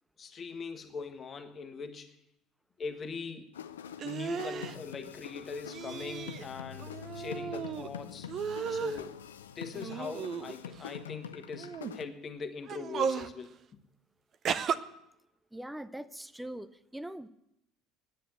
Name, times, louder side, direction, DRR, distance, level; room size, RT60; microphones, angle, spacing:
voice 1, 0.2-2.2 2.8-3.7 4.0-8.3 8.7-9.1 9.5-13.8, left 5 dB, 35° left, 6 dB, 1.5 m, -41 dB
sound 1, 3.5-12.1, left 8 dB, 80° left, 0.5 m, -45 dB
sound 2, 4.0-4.8 5.7-6.5 6.8-7.9 8.3-9.0 9.7-10.8 11.6-11.9 12.6-13.3 14.4-14.8, right 7 dB, 45° right, 0.6 m, -35 dB
voice 2, 15.5-17.3, right 1 dB, 5° right, 15 dB, 0.7 m, -42 dB
10.0 x 9.2 x 9.3 m, 0.83 s
figure-of-eight pair, 65°, 0 cm